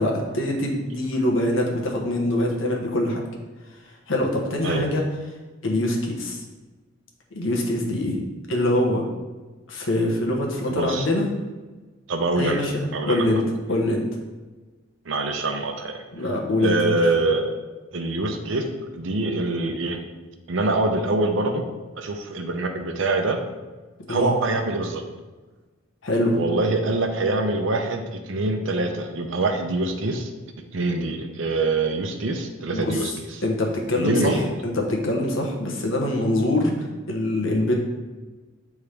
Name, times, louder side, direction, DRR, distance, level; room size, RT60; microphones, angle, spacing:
voice 1, 0.0-3.2 4.1-5.0 5.6-6.4 7.3-8.2 8.5-9.0 9.7-11.3 12.4-13.4 13.7-14.0 16.1-17.1 24.1-24.3 26.0-26.4 32.7-33.1 33.4-37.7, left 1 dB, 80° left, 0 dB, 1.1 m, -24 dB
voice 2, 10.7-11.1 12.1-12.6 12.9-13.3 15.1-16.0 16.6-17.5 17.9-18.7 18.9-20.0 20.5-21.6 22.0-23.4 24.1-25.0 26.3-30.3 30.7-33.1 34.0-34.5, right 2 dB, 75° right, 5 dB, 0.7 m, -24 dB
8.5 x 3.6 x 3.3 m, 1.3 s
head